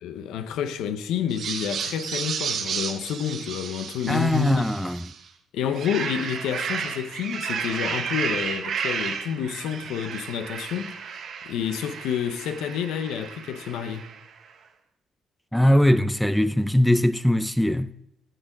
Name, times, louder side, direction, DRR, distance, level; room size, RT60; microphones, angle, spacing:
voice 1, 0.0-4.6 5.5-11.0 11.4-14.1, left 8 dB, 90° left, 0.7 m, -29 dB
sound 1, 1.3-5.2 5.6-14.3, right 6 dB, 65° right, 1.0 m, -32 dB
voice 2, 4.1-5.0 15.5-17.9, equal, ahead, 0.4 m, -21 dB
9.0 x 6.7 x 6.0 m
cardioid pair, 90°, 0 cm